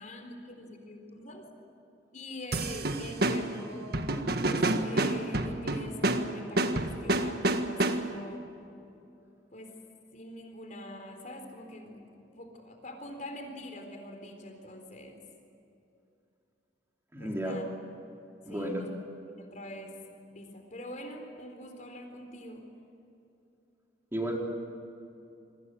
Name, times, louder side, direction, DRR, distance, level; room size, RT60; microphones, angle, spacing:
voice 1, 0.0-1.5 2.1-4.2 4.4-8.5 9.5-9.8 10.1-15.2 17.2-17.7 18.5-18.9 19.4-20.0 20.3-22.7, left 1 dB, 45° left, 4 dB, 4.0 m, -44 dB
sound 1, 2.5-8.3, right 2 dB, 60° right, 1.7 m, -29 dB
voice 2, 17.1-17.6 18.5-18.8 24.1-24.4, right 1 dB, 15° right, -1 dB, 4.1 m, -32 dB
27.5 x 23.5 x 7.8 m, 2.8 s
head